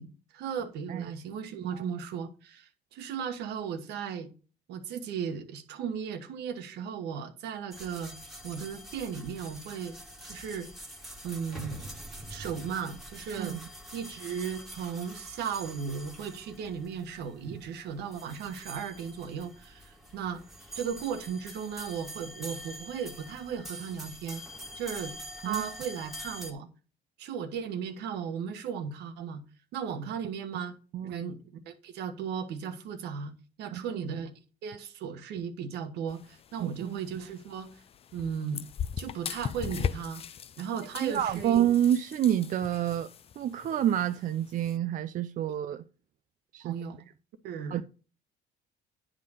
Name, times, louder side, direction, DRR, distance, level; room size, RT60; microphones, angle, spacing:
voice 1, 0.0-4.3 4.7-8.1 8.4-10.0 10.2-10.7 11.2-11.8 12.3-13.6 13.9-20.4 20.7-24.4 24.7-25.1 25.4-26.7 27.2-29.4 29.7-30.7 31.0-33.3 33.6-34.3 34.6-37.8 38.1-38.7 39.0-40.2 40.6-41.6 46.6-47.0 47.4-47.8, right 7 dB, 80° right, 1.3 m, -36 dB
sound 1, 7.7-26.5, right 1 dB, ahead, 1.8 m, -45 dB
sound 2, 36.1-44.8, left 8 dB, 35° left, 0.4 m, -40 dB
voice 2, 36.6-37.0 41.0-43.1 43.4-45.8 46.5-46.8 47.7-47.8, right 10 dB, 50° right, 0.5 m, -28 dB
10.5 x 3.8 x 6.5 m
cardioid pair, 110°, 17 cm